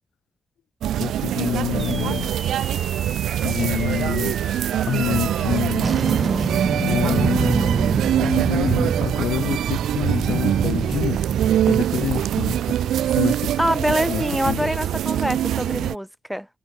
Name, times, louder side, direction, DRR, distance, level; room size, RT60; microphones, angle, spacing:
sound 1, 0.8-15.9, right 11 dB, 85° right, 0.6 m, -24 dB
voice 1, 1.0-2.3 3.4-4.3 4.9-5.9 6.8-7.7 8.2-11.2 11.7-12.6 13.1-13.5 14.1-14.7, left 11 dB, 85° left, 1.5 m, -27 dB
sound 2, 1.8-10.4, right 3 dB, 30° right, 0.5 m, -31 dB
voice 2, 7.0-8.2 13.6-16.5, equal, ahead, 2.2 m, -25 dB
sound 3, 7.2-13.2, right 6 dB, 60° right, 1.3 m, -27 dB
supercardioid pair, 50°, 0 cm